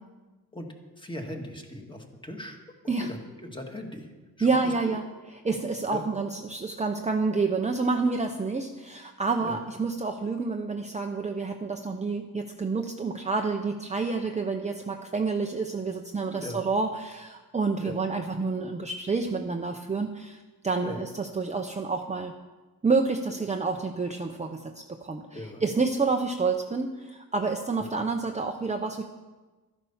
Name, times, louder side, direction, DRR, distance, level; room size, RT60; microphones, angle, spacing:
voice 1, 0.5-2.6 3.0-4.1 4.4-5.0 5.9-6.0 9.4-9.6 16.2-16.6 17.8-18.0 20.8-21.0 25.3-25.6 27.8-28.0, left 1 dB, 15° left, 2 dB, 1.7 m, -39 dB
voice 2, 4.4-5.0 5.3-22.3 22.8-29.0, right 4 dB, 20° right, 3 dB, 0.7 m, -29 dB
12.5 x 10.5 x 5.7 m, 1.2 s
wide cardioid pair, 110°, 38 cm